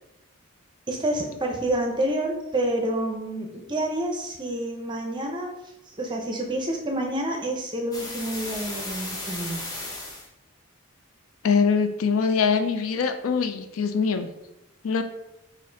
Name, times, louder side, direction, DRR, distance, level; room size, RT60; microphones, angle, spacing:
voice 1, 0.9-5.5 6.0-9.6, right 1 dB, 20° right, 1 dB, 0.5 m, -28 dB
sound 1, 7.9-10.3, left 2 dB, 15° left, 0.7 m, -35 dB
voice 2, 11.4-14.3 14.8-15.0, left 5 dB, 80° left, 8 dB, 0.4 m, -23 dB
4.1 x 2.5 x 3.8 m, 0.87 s
head